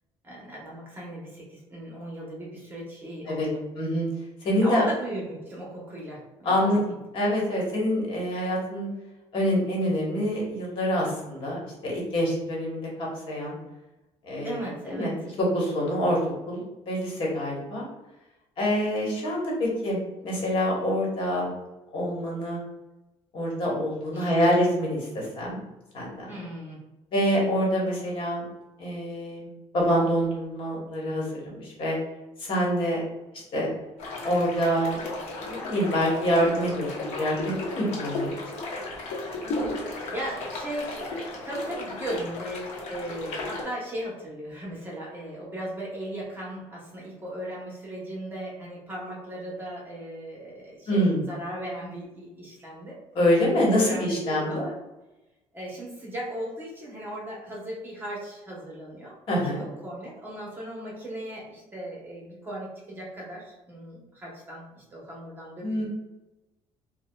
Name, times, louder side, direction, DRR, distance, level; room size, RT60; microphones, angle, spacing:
voice 1, 0.2-3.6 4.6-7.0 14.4-15.1 24.1-24.3 26.3-26.8 39.4-51.0 51.3-53.0 53.5-54.7 55.5-59.1 59.6-65.8, right 1 dB, 20° right, -4 dB, 1.0 m, -37 dB
voice 2, 3.8-4.1 4.4-4.8 6.4-8.9 9.3-13.5 14.2-14.6 14.9-16.2 16.5-17.8 18.6-21.5 21.9-22.6 23.3-25.6 25.9-26.4 27.1-28.4 28.8-29.5 29.7-32.0 32.4-33.0 33.5-33.7 34.2-35.0 35.5-38.3 50.9-51.2 53.1-54.6 59.3-59.6 65.6-65.8, equal, 55° left, -3 dB, 1.2 m, -26 dB
sound 1, 34.0-43.6, left 2 dB, 80° left, 0.9 m, -35 dB
4.5 x 2.2 x 2.3 m, 1.0 s
cardioid pair, 125°, 11 cm